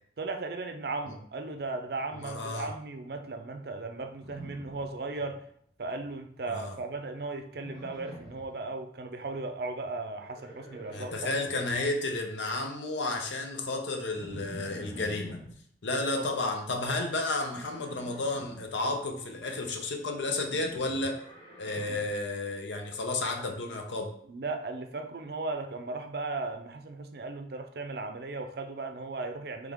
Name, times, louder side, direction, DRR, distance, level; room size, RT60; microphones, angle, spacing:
voice 1, 0.2-5.4 5.8-11.3 15.9-16.3 21.9-22.0 24.3-29.7, right 3 dB, 55° right, 6 dB, 0.5 m, -36 dB
voice 2, 2.1-2.7 6.5-6.8 10.9-15.4 15.8-21.2 21.6-24.1, left 2 dB, 80° left, 3 dB, 0.7 m, -32 dB
Livestock farm animals working animals, 4.2-5.4 5.7-6.2 7.5-8.5 10.1-11.8 14.1-15.5 17.5-18.6 20.4-22.1, equal, 25° left, 1.2 m, -47 dB
3.6 x 3.3 x 3.5 m, 0.64 s
head